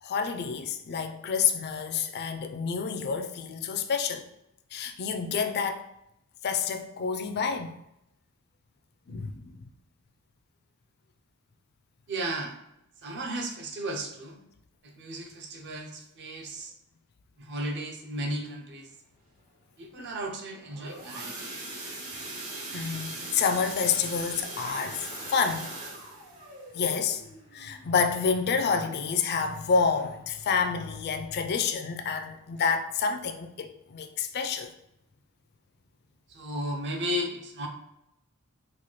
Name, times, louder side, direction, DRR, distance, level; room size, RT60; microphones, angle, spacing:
voice 1, 0.0-4.3 4.7-5.8 6.4-7.7 9.1-9.5 20.0-20.1 22.1-22.2 22.7-25.7 26.7-27.2 27.5-34.7, left 5 dB, 45° left, 0.4 m, -28 dB
voice 2, 12.1-12.6 13.0-14.4 14.8-16.7 17.4-18.9 19.8-21.4 36.3-37.7, right 1 dB, 55° right, 0.6 m, -34 dB
sound 1, 20.5-29.2 29.6-29.8 30.1-30.2 30.7-30.8, right 2 dB, 75° right, 1.2 m, -40 dB
4.1 x 2.3 x 3.0 m
head